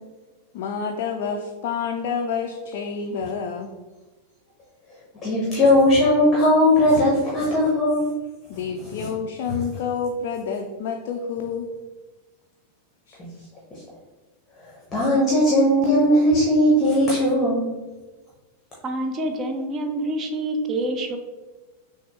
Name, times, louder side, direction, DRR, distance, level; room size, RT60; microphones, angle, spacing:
voice 1, 0.5-3.7 8.5-11.7 13.1-13.2, left 6 dB, 50° left, 2 dB, 0.3 m, -28 dB
voice 2, 5.2-8.1 8.8-9.1 9.5-9.6 13.2-13.3 13.7-13.8 14.9-17.7, left 1 dB, 20° left, -5 dB, 0.8 m, -18 dB
voice 3, 18.8-21.2, right 1 dB, 30° right, 5 dB, 0.5 m, -27 dB
5.9 x 2.0 x 2.9 m, 1.2 s
figure-of-eight pair, 90°, 0 cm